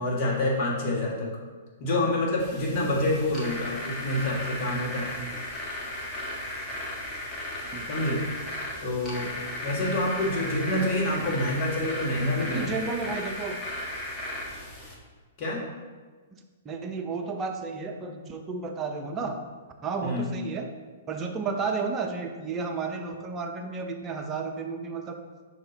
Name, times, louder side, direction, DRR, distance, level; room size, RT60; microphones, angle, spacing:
voice 1, 0.0-1.3 1.8-5.1 7.9-8.2 8.8-9.3 9.6-12.7 15.4-15.6 20.0-20.3, left 1 dB, 40° left, -4 dB, 1.6 m, -27 dB
sound 1, 2.4-14.9, left 1 dB, 15° left, 1.3 m, -36 dB
voice 2, 12.5-13.6 16.3-19.4 19.8-20.7 21.1-25.2, right 4 dB, 20° right, 3 dB, 0.6 m, -32 dB
5.8 x 4.1 x 3.9 m, 1.4 s
figure-of-eight pair, 110°, 0 cm